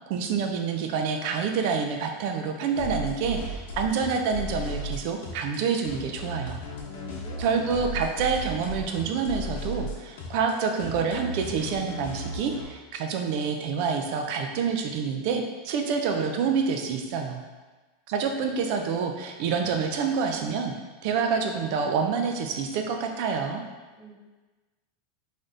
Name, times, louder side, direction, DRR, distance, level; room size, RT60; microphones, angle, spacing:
voice 1, 0.1-6.6 7.4-17.4 18.1-20.7 21.0-23.6, right 5 dB, 60° right, 4 dB, 0.4 m, -27 dB
sound 1, 2.8-12.6, left 1 dB, 80° left, 1.0 m, -35 dB
voice 2, 6.8-7.6 24.0-24.1, left 4 dB, 30° left, -4 dB, 1.1 m, -44 dB
3.3 x 2.6 x 3.7 m, 1.3 s
supercardioid pair, 140°, 0 cm